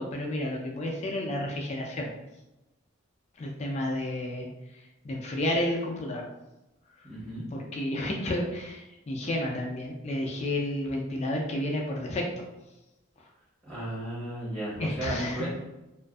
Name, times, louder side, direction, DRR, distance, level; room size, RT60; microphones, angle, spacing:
voice 1, 0.0-2.1 3.4-4.5 4.7-6.2 7.5-12.5 14.8-15.5, left 1 dB, 35° left, -1 dB, 0.3 m, -31 dB
voice 2, 7.0-7.5 13.6-15.6, right 1 dB, 20° right, -11 dB, 0.9 m, -34 dB
2.5 x 2.4 x 2.3 m, 0.98 s
head